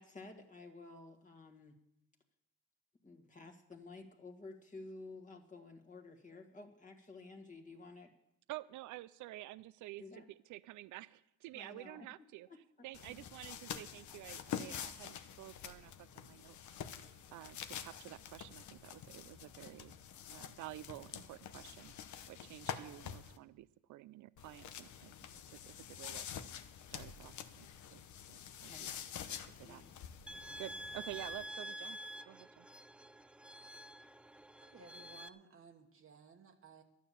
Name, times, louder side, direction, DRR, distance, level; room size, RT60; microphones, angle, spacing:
voice 1, 0.0-1.8 3.0-8.1 10.0-10.2 11.5-12.1 12.5-12.6 13.1-13.2 28.6-29.2 29.6-29.9, left 3 dB, 25° left, 1 dB, 1.8 m, -53 dB
voice 2, 8.5-10.0 10.5-12.5 12.8-16.6 17.3-20.0 20.3-21.9 22.3-25.1 25.5-26.3 26.9-28.9 29.3-29.8 30.6-32.0 32.3-32.7, right 16 dB, 75° right, 18 dB, 0.5 m, -50 dB
sound 1, 12.9-23.4 24.4-31.4, left 9 dB, 70° left, 0.9 m, -47 dB
sound 2, 30.3-35.3, equal, 5° right, 0.4 m, -48 dB
voice 3, 34.6-36.8, right 4 dB, 45° right, 2 dB, 1.3 m, -58 dB
12.0 x 9.4 x 7.1 m, 0.82 s
cardioid pair, 90°, 30 cm